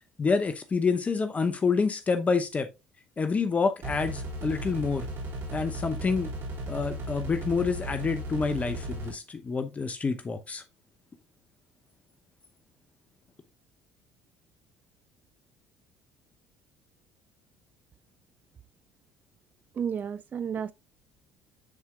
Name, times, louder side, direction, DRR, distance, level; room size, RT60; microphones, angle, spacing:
voice 1, 0.2-2.7 3.2-5.1 5.5-6.3 6.7-10.6, left 4 dB, 30° left, 0.8 m, -28 dB
sound 1, 3.8-9.1, right 1 dB, 60° right, 3.7 m, -36 dB
voice 2, 19.7-20.7, right 7 dB, 40° right, 0.4 m, -32 dB
9.7 x 4.3 x 2.4 m
hypercardioid pair, 65°, 5 cm